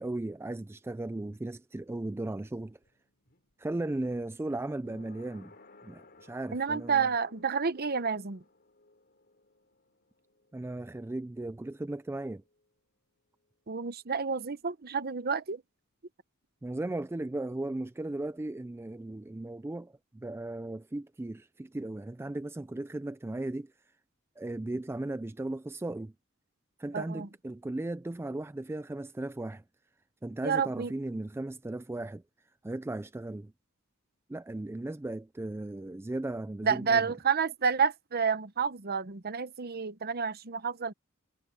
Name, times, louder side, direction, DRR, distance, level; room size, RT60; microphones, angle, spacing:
voice 1, 0.0-2.8 3.6-5.5 5.8-7.1 10.5-12.4 16.6-23.7 24.4-26.1 26.8-29.6 30.2-32.2 32.6-33.5 34.3-37.1, right 2 dB, 10° right, 0.3 m, -36 dB
sound 1, 1.8-13.3 13.5-13.6, left 3 dB, 50° left, 4.0 m, -60 dB
voice 2, 6.5-8.4 13.7-15.6 26.9-27.3 30.4-30.9 36.6-40.9, right 6 dB, 50° right, 0.9 m, -29 dB
head